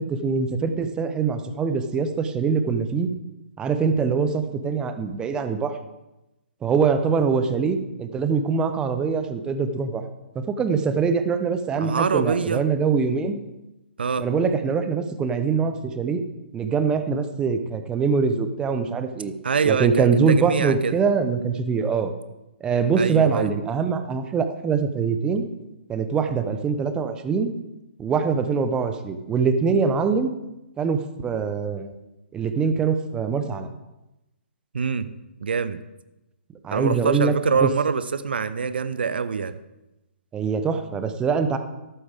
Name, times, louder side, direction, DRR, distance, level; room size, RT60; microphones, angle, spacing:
voice 1, 0.0-3.1 3.6-5.8 6.6-10.0 10.3-13.4 14.2-16.2 16.5-19.3 19.6-22.1 22.6-25.5 25.9-27.5 28.0-30.3 30.8-31.9 32.3-33.7 36.6-37.7 40.3-41.6, right 5 dB, 15° right, 8 dB, 0.9 m, -23 dB
voice 2, 11.8-12.6 14.0-14.3 19.4-20.9 23.0-23.5 34.7-35.1 35.4-35.8 36.7-39.6, right 6 dB, 60° right, 13 dB, 0.7 m, -24 dB
14.0 x 11.5 x 3.6 m, 0.97 s
figure-of-eight pair, 125°, 6 cm